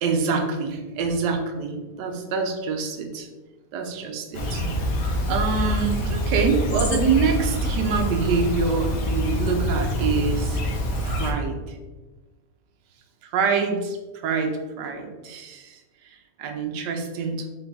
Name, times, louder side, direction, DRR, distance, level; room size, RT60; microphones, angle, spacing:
voice 1, 0.0-3.3 3.7-4.6 5.3-10.6 11.0-11.8 13.3-14.0 14.2-17.5, right 5 dB, 75° right, 3 dB, 1.2 m, -26 dB
Chirp tweet, 4.3-11.3, equal, 75° left, 1.3 m, -25 dB
3.8 x 3.4 x 3.9 m, 1.2 s
omnidirectional pair, 1.8 m